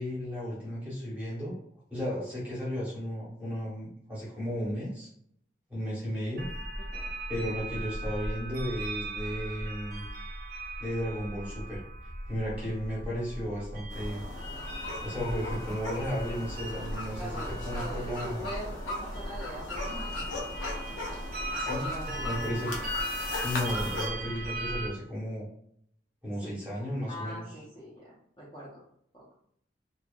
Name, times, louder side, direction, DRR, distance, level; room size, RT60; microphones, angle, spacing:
voice 1, 0.0-1.5 1.9-5.1 5.7-6.5 7.3-10.0 10.8-11.8 12.3-14.2 15.0-18.4 21.5-22.7 23.4-25.4 26.2-27.5, equal, 10° right, -7 dB, 0.8 m, -34 dB
sound 1, 6.4-24.9, right 1 dB, 45° right, 0.5 m, -38 dB
voice 2, 6.8-7.1 17.2-20.4 21.7-22.3 26.4-26.6 27.1-28.8 29.1-29.2, equal, 25° left, -7 dB, 0.6 m, -43 dB
sound 2, 13.9-24.1, left 2 dB, 85° left, 0.6 m, -38 dB
2.6 x 2.3 x 2.2 m, 0.69 s
head